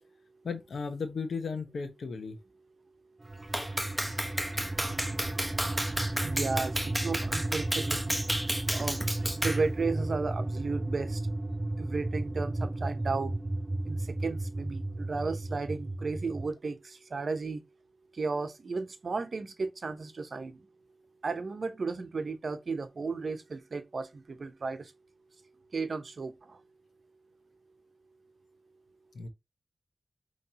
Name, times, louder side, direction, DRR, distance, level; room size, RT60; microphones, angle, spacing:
voice 1, 0.4-2.4 29.1-29.3, left 5 dB, 85° left, 0.9 m, -35 dB
sound 1, 3.2-16.5, right 2 dB, 30° right, 0.5 m, -34 dB
Clapping, 3.5-9.7, equal, 5° right, 1.1 m, -32 dB
voice 2, 6.2-8.2 8.7-11.2 11.8-13.4 13.8-17.6 18.1-20.6 21.2-24.9 25.7-26.6, right 4 dB, 65° right, 0.8 m, -34 dB
5.4 x 3.1 x 2.8 m
cardioid pair, 55°, 0 cm